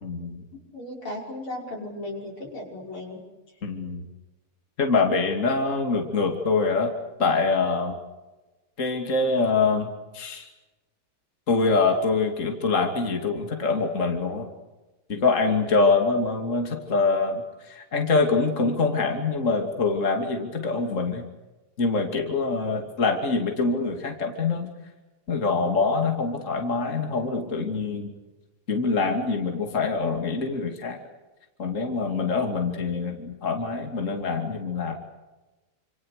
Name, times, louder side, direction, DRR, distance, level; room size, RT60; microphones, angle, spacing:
voice 1, 0.0-0.4 3.6-4.0 4.8-6.9 7.2-8.0 8.8-10.5 11.5-14.5 15.1-21.3 21.8-24.7 25.3-28.1 28.7-31.0 31.6-34.9, left 4 dB, 35° left, 3 dB, 2.9 m, -24 dB
voice 2, 0.5-3.2, left 1 dB, 80° left, 0 dB, 6.5 m, -36 dB
28.5 x 27.0 x 6.7 m, 1.1 s
omnidirectional pair, 2.3 m